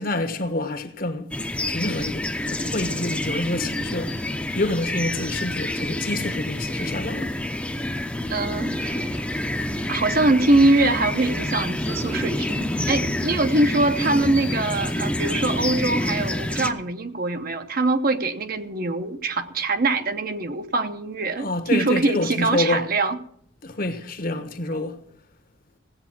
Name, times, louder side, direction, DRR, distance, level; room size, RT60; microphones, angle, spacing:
voice 1, 0.0-1.3 1.7-4.2 4.5-7.4 21.4-22.9 23.6-25.0, left 2 dB, 50° left, 1.2 m, -27 dB
sound 1, 1.3-16.7, left 1 dB, 5° left, 0.7 m, -27 dB
voice 2, 8.3-9.1 9.9-23.2, right 2 dB, 50° right, 0.9 m, -23 dB
16.5 x 8.2 x 6.0 m
head